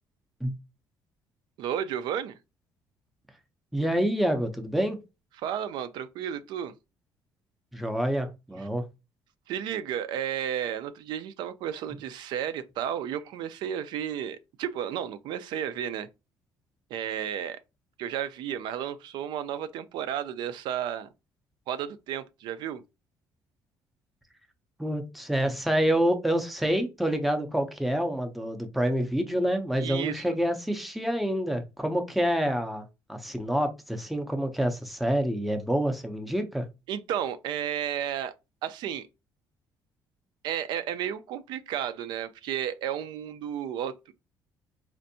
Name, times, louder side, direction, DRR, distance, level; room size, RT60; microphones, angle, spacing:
voice 1, 1.6-2.4 5.4-6.7 9.5-16.1 16.9-17.6 18.0-21.1 21.7-22.8 29.8-30.2 36.9-38.3 38.6-39.1 40.4-44.1, right 9 dB, 70° right, 0.4 m, -32 dB
voice 2, 3.7-5.0 7.7-8.8 24.8-36.6, equal, ahead, 0.5 m, -27 dB
4.3 x 2.5 x 2.6 m
cardioid pair, 170°, 8 cm